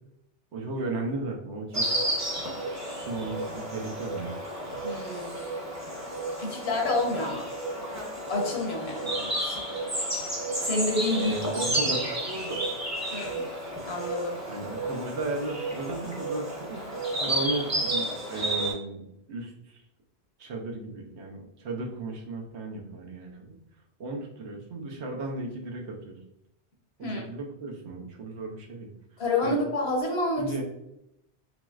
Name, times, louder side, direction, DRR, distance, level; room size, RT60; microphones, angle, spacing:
voice 1, 0.5-1.9 3.1-4.3 11.3-12.7 14.4-19.0 19.3-19.8 20.4-23.5 24.0-26.2 27.0-28.9 29.4-29.6 30.4-30.6, right 2 dB, 80° right, 1 dB, 1.1 m, -35 dB
Insect, 1.7-18.7, right 1 dB, 20° right, 0.7 m, -32 dB
voice 2, 4.8-5.4 6.4-7.5 8.3-9.6 10.6-11.4 13.1-13.5 13.8-14.4 27.0-27.2 29.2-30.6, left 2 dB, 70° left, 0 dB, 1.1 m, -29 dB
4.2 x 3.0 x 2.3 m, 0.81 s
omnidirectional pair, 1.1 m